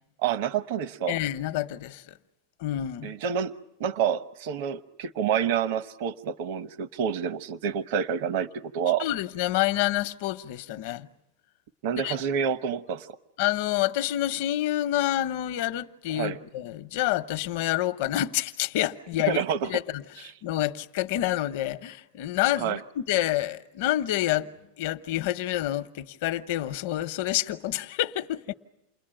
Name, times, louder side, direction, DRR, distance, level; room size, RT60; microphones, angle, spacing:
voice 1, 0.2-1.2 3.0-3.5 3.8-9.1 11.8-13.1 16.1-16.4 19.3-19.7 22.6-22.8, right 8 dB, 55° right, 0.9 m, -28 dB
voice 2, 1.1-2.0 2.6-3.1 9.0-11.1 12.0-12.2 13.4-24.5 24.8-28.5, left 14 dB, 55° left, 0.9 m, -28 dB
29.0 x 21.0 x 9.0 m
supercardioid pair, 165°, 0 cm